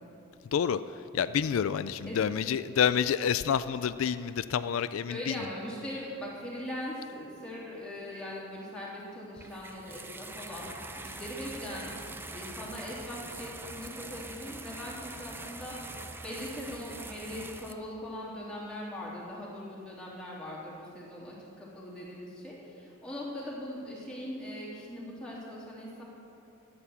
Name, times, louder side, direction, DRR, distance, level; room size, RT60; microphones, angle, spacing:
voice 1, 0.5-5.5, left 8 dB, 80° left, 13 dB, 0.3 m, -28 dB
voice 2, 5.1-10.7 11.0-11.9 12.3-26.0, left 1 dB, 5° left, -7 dB, 3.1 m, -40 dB
sound 1, 9.4-17.7, right 2 dB, 10° right, 0.5 m, -43 dB
13.5 x 8.9 x 7.1 m, 2.8 s
head